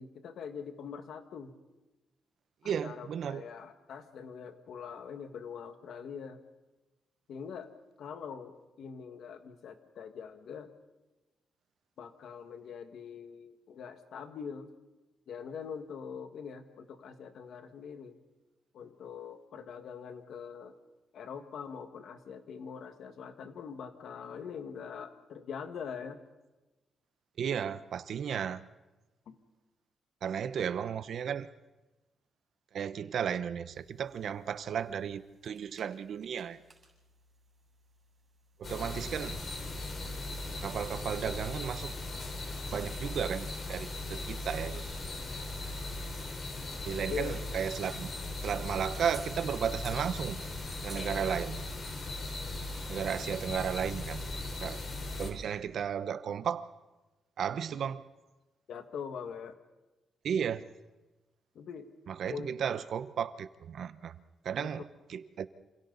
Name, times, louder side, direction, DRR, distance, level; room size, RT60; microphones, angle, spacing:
voice 1, 0.0-1.5 2.6-6.4 7.3-7.7 8.0-10.7 12.0-14.7 15.3-18.2 18.7-20.8 21.1-26.2 29.2-29.4 47.1-47.3 58.7-59.6 61.5-61.9 62.3-62.5 64.6-64.7, left 6 dB, 75° left, 7 dB, 1.8 m, -43 dB
voice 2, 2.6-3.4 27.4-28.6 30.2-31.5 32.7-36.6 38.6-39.4 40.6-41.9 42.7-44.8 46.9-48.1 48.4-50.4 50.8-51.6 52.9-54.3 54.6-54.8 55.1-56.7 57.4-58.0 60.2-60.6 62.1-64.2 64.4-65.5, right 8 dB, 65° right, 13 dB, 0.9 m, -34 dB
sound 1, 33.7-52.5, right 3 dB, 35° right, 7.4 m, -60 dB
sound 2, 38.6-55.3, left 2 dB, 45° left, 4.4 m, -38 dB
27.5 x 27.5 x 4.1 m, 1.1 s
cardioid pair, 115°, 0 cm